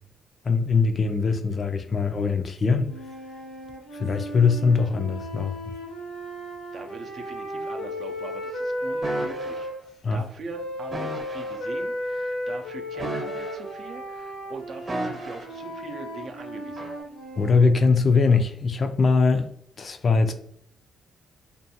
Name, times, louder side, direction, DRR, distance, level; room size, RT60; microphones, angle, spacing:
voice 1, 0.4-2.9 3.9-5.6 10.0-10.2 17.4-19.5 19.8-20.3, left 4 dB, 40° left, 0.4 m, -21 dB
sound 1, 2.8-9.8 10.5-17.7, equal, 90° left, 0.8 m, -34 dB
voice 2, 6.7-9.7 10.1-16.9, right 3 dB, 55° right, 0.5 m, -41 dB
sound 2, 9.0-9.6 10.9-11.6 12.9-13.9 14.9-15.6 16.8-17.0, right 2 dB, 35° right, 0.9 m, -34 dB
2.5 x 2.2 x 2.7 m
cardioid pair, 90°, 0 cm